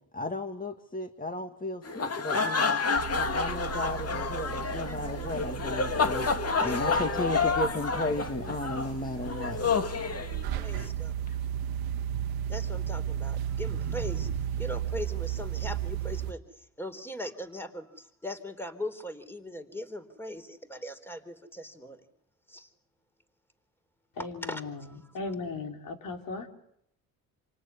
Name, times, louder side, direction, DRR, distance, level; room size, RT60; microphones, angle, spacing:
voice 1, 0.1-2.8 3.1-9.6 11.3-11.4, left 2 dB, 25° left, 7 dB, 1.9 m, -35 dB
sound 1, 1.8-10.9, left 4 dB, 45° left, 2.5 m, -29 dB
sound 2, 3.0-16.3, right 10 dB, 90° right, 1.3 m, -35 dB
voice 2, 10.5-11.1 12.5-14.3 14.6-22.0 22.5-22.7 24.4-25.0, left 1 dB, 5° left, 9 dB, 3.9 m, -40 dB
voice 3, 24.1-26.5, left 3 dB, 65° left, 4 dB, 4.5 m, -37 dB
28.5 x 18.5 x 9.9 m, 0.74 s
cardioid pair, 75°, 35 cm